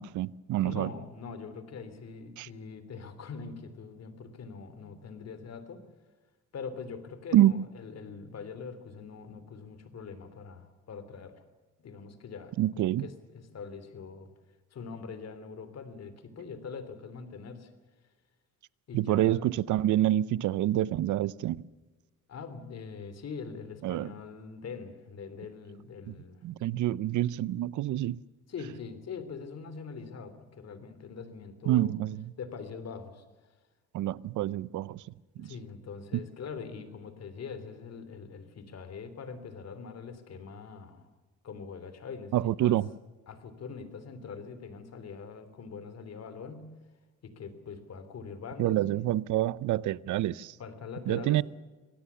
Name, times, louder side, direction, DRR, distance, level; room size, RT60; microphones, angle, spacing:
voice 1, 0.0-0.9 2.4-2.5 7.3-7.5 12.6-13.1 18.9-21.6 23.8-24.1 26.4-28.2 31.7-32.2 33.9-35.0 35.4-35.5 42.3-42.9 48.6-50.5 51.1-51.4, right 13 dB, 75° right, 0.7 m, -27 dB
voice 2, 0.6-5.8 6.5-11.4 11.8-14.3 14.7-17.7 18.9-19.4 22.3-26.4 28.5-31.9 32.4-33.2 35.4-41.1 41.4-42.8 43.3-46.7 47.2-49.1 50.6-51.4, left 5 dB, 55° left, 3.2 m, -43 dB
26.0 x 17.5 x 7.0 m
cardioid pair, 90°, 30 cm